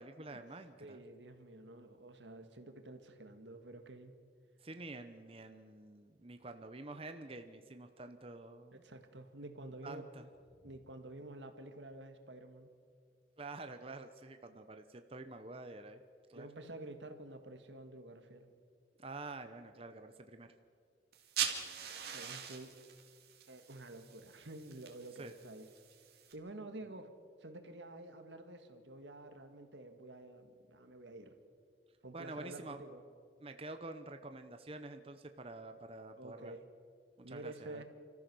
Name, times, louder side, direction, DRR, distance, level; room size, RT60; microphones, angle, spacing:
voice 1, 0.0-1.0 4.6-8.8 9.8-10.3 13.4-16.0 16.3-16.5 19.0-20.5 25.2-25.3 32.1-32.8 33.4-36.5 37.2-37.8, right 2 dB, 30° right, 7 dB, 0.9 m, -48 dB
voice 2, 0.8-4.1 8.7-10.1 10.6-12.7 16.3-18.5 22.1-22.7 23.5-25.7 26.3-27.1 27.4-31.3 32.0-33.0 36.2-36.6 37.2-37.8, right 2 dB, 90° right, 6 dB, 1.9 m, -50 dB
sound 1, 21.1-26.3, right 8 dB, 60° right, 2.4 m, -43 dB
30.0 x 14.5 x 6.3 m, 2.1 s
head